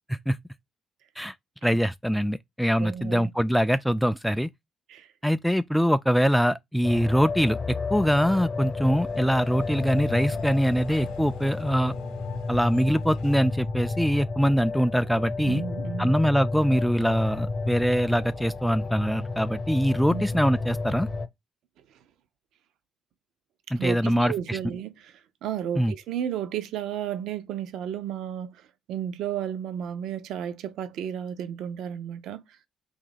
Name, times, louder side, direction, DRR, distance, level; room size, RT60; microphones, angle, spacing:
voice 1, 1.6-4.5 5.2-11.9 12.5-15.6 16.0-21.1 23.7-24.6 25.8-25.9, equal, ahead, 0.3 m, -23 dB
voice 2, 2.8-3.3 4.9-5.1 15.4-16.1 20.1-20.3 23.8-25.1 25.4-28.6 28.9-32.4, right 9 dB, 75° right, 0.5 m, -33 dB
sound 1, 6.8-21.3, left 3 dB, 35° left, 0.8 m, -32 dB
sound 2, 8.5-13.6, left 7 dB, 85° left, 0.6 m, -45 dB
3.7 x 2.7 x 3.8 m
hypercardioid pair, 55°, 0 cm